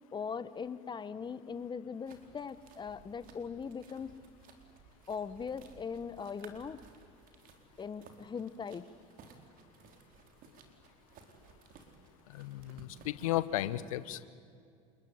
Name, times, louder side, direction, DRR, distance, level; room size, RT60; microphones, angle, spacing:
voice 1, 0.1-4.1 5.1-6.8 7.8-8.9, left 6 dB, 25° left, 14 dB, 1.3 m, -40 dB
sound 1, 2.1-13.4, right 5 dB, 55° right, 4.1 m, -58 dB
voice 2, 12.3-14.3, left 14 dB, 85° left, 15 dB, 0.9 m, -34 dB
28.5 x 21.5 x 9.7 m, 2.4 s
hypercardioid pair, 85°, 17 cm